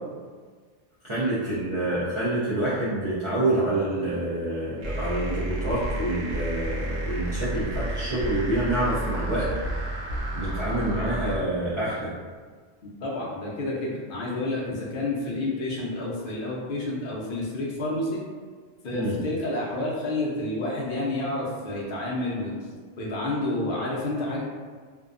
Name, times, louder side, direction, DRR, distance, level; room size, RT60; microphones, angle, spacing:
voice 1, 1.0-10.0 10.3-12.1 18.9-19.2, right 1 dB, 40° right, -12 dB, 0.4 m, -27 dB
sound 1, 4.8-11.4, right 1 dB, 80° right, 0.9 m, -31 dB
voice 2, 13.0-18.2 18.8-22.6 23.0-24.4, left 2 dB, 55° left, -4 dB, 0.6 m, -29 dB
2.6 x 2.2 x 2.4 m, 1.5 s
omnidirectional pair, 1.3 m